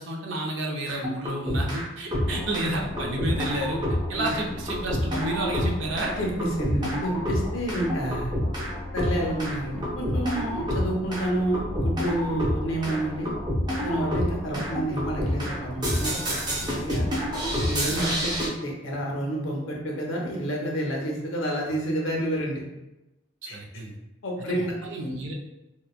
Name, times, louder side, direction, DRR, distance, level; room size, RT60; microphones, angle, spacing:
voice 1, 0.0-3.8 4.1-6.2 23.4-23.9 24.4-25.3, right 1 dB, 70° right, 0 dB, 0.5 m, -31 dB
sound 1, 0.9-1.8 2.1-18.5, equal, 20° right, 0.5 m, -29 dB
voice 2, 6.2-8.3 8.9-13.3 13.8-16.1 16.6-17.1 17.5-22.6 23.5-23.6 24.2-24.7, right 1 dB, 85° left, -1 dB, 0.7 m, -29 dB
2.9 x 2.2 x 2.3 m, 0.98 s
head